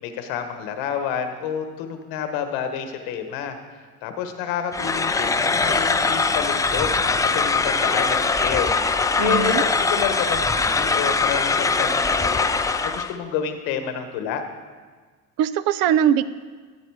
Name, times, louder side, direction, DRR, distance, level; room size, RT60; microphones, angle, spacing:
voice 1, 0.0-8.7 9.2-12.6 12.8-14.4, left 8 dB, 90° left, 7 dB, 1.3 m, -29 dB
sound 1, 4.7-13.2, left 4 dB, 10° left, 0.3 m, -22 dB
voice 2, 9.2-9.6 15.4-16.2, right 10 dB, 80° right, 15 dB, 0.6 m, -20 dB
14.0 x 7.9 x 4.8 m, 1.5 s
cardioid pair, 115°, 36 cm